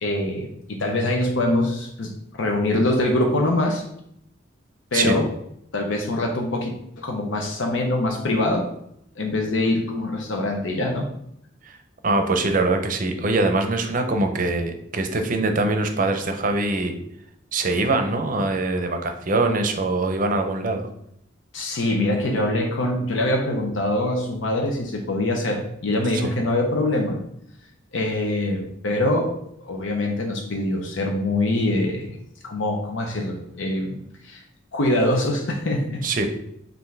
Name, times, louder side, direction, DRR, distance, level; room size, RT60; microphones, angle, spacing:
voice 1, 0.0-3.8 4.9-5.3 5.7-8.7 9.2-11.1 21.5-27.2 27.9-29.3 29.6-32.2 32.4-34.0 34.2-34.4 34.7-36.0, left 1 dB, 80° left, 2 dB, 0.6 m, -24 dB
voice 2, 12.0-17.0 17.5-20.9 26.1-26.2 36.0-36.3, right 2 dB, 45° right, 6 dB, 0.6 m, -23 dB
5.6 x 2.6 x 3.3 m, 0.73 s
head